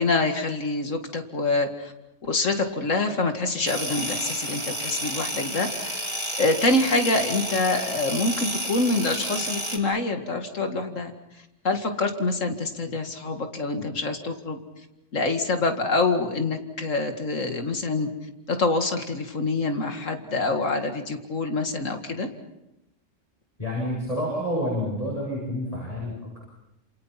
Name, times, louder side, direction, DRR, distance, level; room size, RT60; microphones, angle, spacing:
voice 1, 0.0-1.9 2.2-6.1 6.4-11.1 11.6-14.6 15.1-18.1 18.5-22.3, left 3 dB, 80° left, 6 dB, 2.5 m, -26 dB
sound 1, 3.7-9.8, equal, 20° right, 3.3 m, -31 dB
voice 2, 23.6-26.4, equal, 30° left, -4 dB, 7.5 m, -29 dB
28.0 x 28.0 x 5.9 m, 0.90 s
omnidirectional pair, 1.3 m